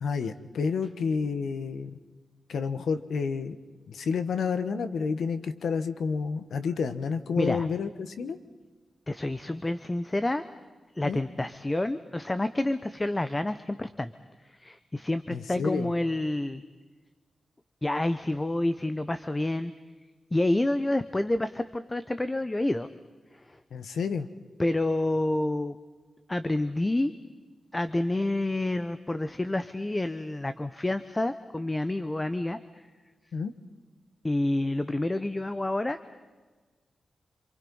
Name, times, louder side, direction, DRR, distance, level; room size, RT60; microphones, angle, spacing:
voice 1, 0.0-2.0 2.5-3.6 3.9-8.4 11.0-11.2 15.3-15.9 23.7-24.3 33.3-33.5, left 5 dB, 90° left, 10 dB, 1.4 m, -30 dB
voice 2, 9.1-10.4 10.9-14.1 14.4-16.6 17.8-19.7 20.3-22.9 23.3-23.6 24.6-25.8 26.3-27.1 27.7-32.8 34.2-36.0, left 1 dB, 15° left, 11 dB, 0.8 m, -28 dB
27.5 x 27.0 x 5.5 m, 1.4 s
wide cardioid pair, 130°, 0 cm